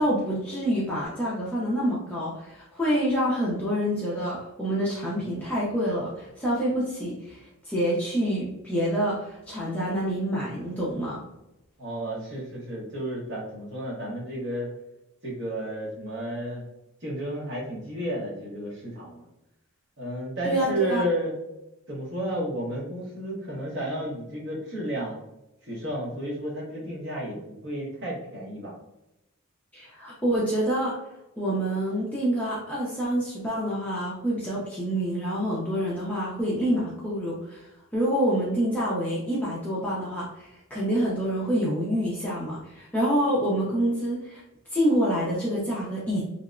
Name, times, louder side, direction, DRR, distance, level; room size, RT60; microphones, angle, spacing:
voice 1, 0.0-11.2 20.4-21.0 29.7-31.0 31.4-44.4 44.7-46.3, equal, 5° left, -7 dB, 0.4 m, -27 dB
voice 2, 11.8-14.7 15.2-16.6 17.0-19.3 20.0-21.3 21.9-25.2 25.6-28.8, right 1 dB, 50° right, -4 dB, 0.9 m, -32 dB
2.7 x 2.0 x 2.4 m, 0.90 s
head